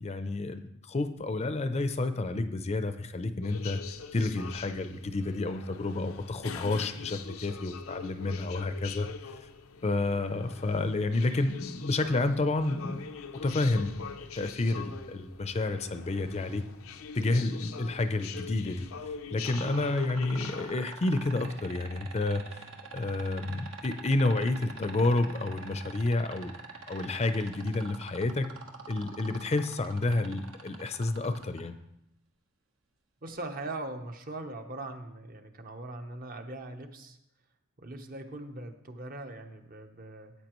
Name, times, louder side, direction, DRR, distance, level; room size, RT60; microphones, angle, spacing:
voice 1, 0.0-3.8 4.1-9.1 9.8-13.1 13.4-14.1 14.3-16.6 17.1-18.9 19.3-22.6 22.9-26.5 26.9-28.5 28.9-31.7, left 2 dB, 30° left, 9 dB, 0.5 m, -30 dB
sound 1, 3.4-20.8, left 6 dB, 90° left, 0.6 m, -44 dB
sound 2, 19.5-31.6 33.3-33.4, right 4 dB, 75° right, 1.2 m, -44 dB
voice 2, 33.2-37.2 37.8-40.3, right 2 dB, 45° right, 6 dB, 0.9 m, -41 dB
13.5 x 8.6 x 3.0 m, 0.82 s
head